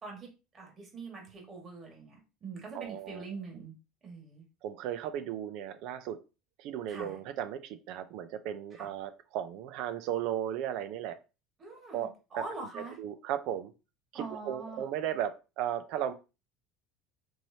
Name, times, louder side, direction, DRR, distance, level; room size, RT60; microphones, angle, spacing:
voice 1, 0.0-3.8 4.0-4.5 6.9-7.2 8.7-8.9 11.6-13.0 14.1-14.9, right 3 dB, 35° right, 0 dB, 1.8 m, -43 dB
voice 2, 2.7-3.2 4.6-6.2 6.6-11.2 11.9-12.1 13.0-13.7 14.1-16.1, right 10 dB, 70° right, 11 dB, 0.5 m, -35 dB
4.5 x 3.2 x 2.8 m, 0.30 s
supercardioid pair, 100°, 0 cm